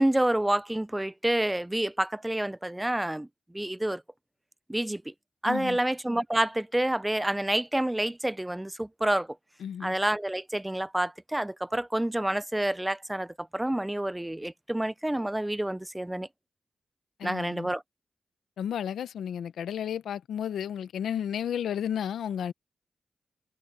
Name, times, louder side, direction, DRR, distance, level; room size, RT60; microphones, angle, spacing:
voice 1, 0.0-3.3 3.5-4.0 4.7-5.0 5.4-9.3 9.8-16.3 17.2-17.8, right 1 dB, 15° right, 0.5 m, -28 dB
voice 2, 5.4-5.8 9.6-10.0 17.2-17.7 18.6-22.5, left 9 dB, 90° left, 0.9 m, -32 dB
cardioid pair, 45°, 0 cm